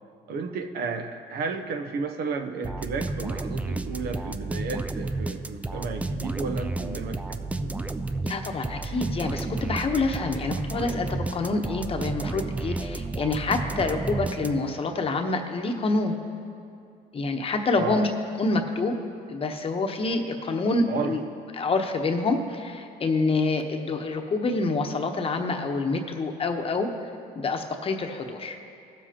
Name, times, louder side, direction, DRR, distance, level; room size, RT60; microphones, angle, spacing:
voice 1, 0.3-7.7 17.7-18.1 20.9-21.2, right 4 dB, 65° right, 6 dB, 0.8 m, -33 dB
sound 1, 2.6-14.9, right 2 dB, 10° right, 0.3 m, -32 dB
voice 2, 8.2-16.2 17.1-18.1 18.4-19.0 19.3-21.2 21.6-28.6, left 3 dB, 35° left, 4 dB, 1.0 m, -27 dB
18.0 x 7.3 x 2.9 m, 2.4 s
cardioid pair, 110°, 17 cm